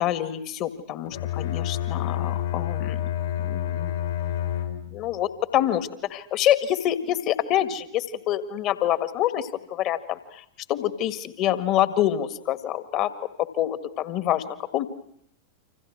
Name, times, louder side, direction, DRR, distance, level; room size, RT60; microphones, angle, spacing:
voice 1, 0.0-3.0 3.4-3.9 4.9-13.1 13.4-14.9, left 12 dB, 40° left, 11 dB, 1.9 m, -26 dB
Bowed string instrument, 1.1-5.1, left 11 dB, 60° left, 3.6 m, -29 dB
29.5 x 26.5 x 6.4 m, 0.70 s
figure-of-eight pair, 90°, 0 cm